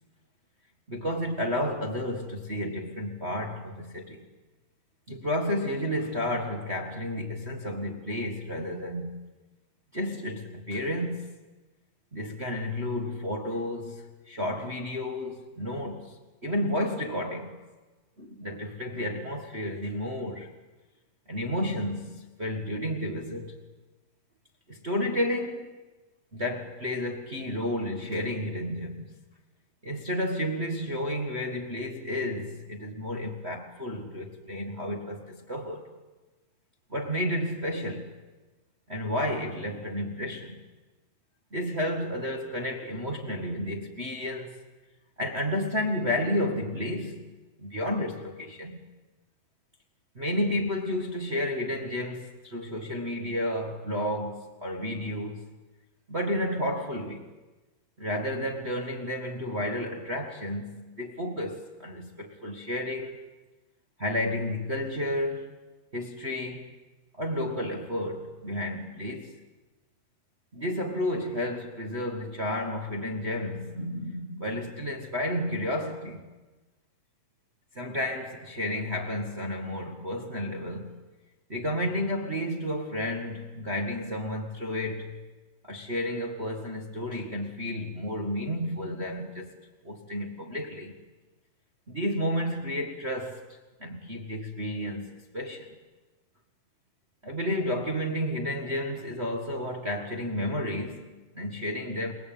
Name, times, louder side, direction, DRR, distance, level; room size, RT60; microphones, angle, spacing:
voice 1, 0.9-4.3 5.1-9.2 9.9-11.3 12.1-17.6 18.2-20.5 21.3-23.6 24.7-25.7 26.3-29.1 29.8-35.9 36.9-38.1 38.9-40.6 41.5-44.6 45.2-47.3 47.6-48.8 50.1-55.4 56.1-57.3 58.0-63.2 64.0-65.5 65.9-66.7 67.1-69.4 70.5-76.2 77.7-81.0 81.5-85.2 85.6-89.6 89.8-90.9 91.9-95.8 97.2-102.1, left 1 dB, 30° right, 1.2 m, -31 dB
29.0 x 19.5 x 9.2 m
omnidirectional pair, 4.0 m